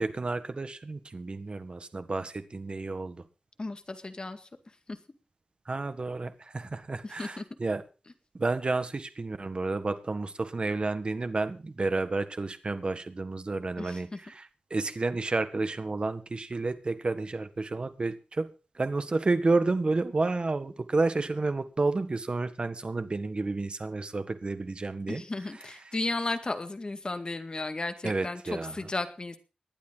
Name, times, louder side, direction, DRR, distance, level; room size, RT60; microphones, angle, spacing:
voice 1, 0.0-3.2 5.6-7.8 8.3-18.5 18.7-25.2 28.0-28.9, right 3 dB, 45° right, 10 dB, 1.6 m, -30 dB
voice 2, 3.6-4.5 4.9-5.0 7.0-7.4 13.8-14.2 25.1-29.4, left 2 dB, 40° left, 8 dB, 2.0 m, -34 dB
19.5 x 12.0 x 4.0 m, 0.34 s
wide cardioid pair, 100°, 2 cm